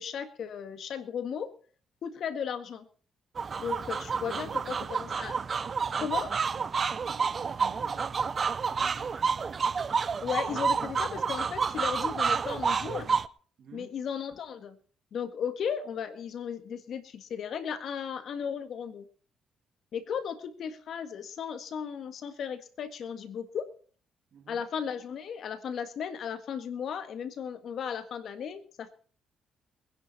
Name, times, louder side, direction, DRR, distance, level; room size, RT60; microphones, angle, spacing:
voice 1, 0.0-1.5 2.0-2.9 3.6-5.3 6.0-6.3 10.2-13.2 13.7-14.8 15.1-19.1 19.9-23.7 24.5-28.9, left 7 dB, 65° left, 1.7 m, -35 dB
sound 1, 3.4-13.3, right 5 dB, 40° right, 0.6 m, -29 dB
voice 2, 4.2-4.9 5.8-8.3 8.8-9.5 13.6-14.0 24.3-24.6, right 9 dB, 65° right, 2.2 m, -51 dB
21.5 x 10.5 x 4.2 m
cardioid pair, 90°, 0 cm